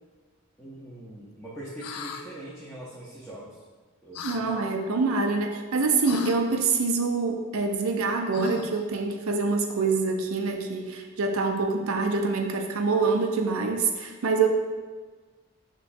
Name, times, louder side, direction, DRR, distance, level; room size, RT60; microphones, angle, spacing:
voice 1, 0.6-3.5 4.0-4.6, right 1 dB, 5° left, -9 dB, 0.5 m, -42 dB
sound 1, 1.8-2.2 4.1-4.4 6.0-6.4 8.3-8.8, left 6 dB, 80° left, 0.3 m, -35 dB
voice 2, 4.2-14.5, right 4 dB, 65° right, 4 dB, 0.4 m, -25 dB
5.8 x 3.0 x 2.5 m, 1.4 s
head